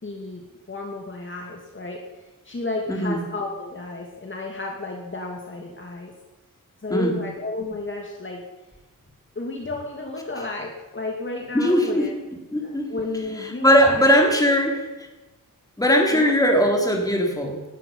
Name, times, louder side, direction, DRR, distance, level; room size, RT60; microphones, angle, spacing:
voice 1, 0.0-6.1 6.8-8.4 9.4-12.1 12.6-14.0 14.5-14.6 16.1-16.3, left 2 dB, 35° left, 1 dB, 2.5 m, -32 dB
voice 2, 2.9-3.2 6.9-7.2 11.5-12.0 12.5-12.9 13.6-14.8 15.8-17.6, equal, 10° left, 1 dB, 3.7 m, -19 dB
19.5 x 12.5 x 5.6 m, 1.1 s
wide cardioid pair, 100°, 33 cm